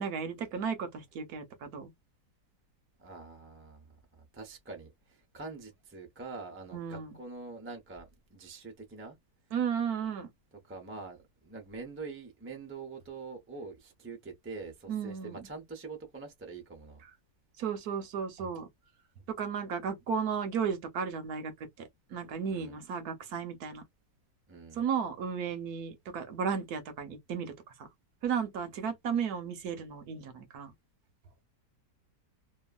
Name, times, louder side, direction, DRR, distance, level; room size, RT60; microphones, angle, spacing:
voice 1, 0.0-1.9 6.7-7.1 9.5-10.3 14.9-15.4 17.6-18.7 19.3-21.5 21.8-23.8 24.7-27.9 28.2-30.7, right 6 dB, 70° right, 1.2 m, -34 dB
voice 2, 3.0-9.2 10.6-17.0 22.5-22.7 24.5-24.8, right 4 dB, 15° right, 0.4 m, -45 dB
2.9 x 2.4 x 2.3 m
omnidirectional pair, 1.8 m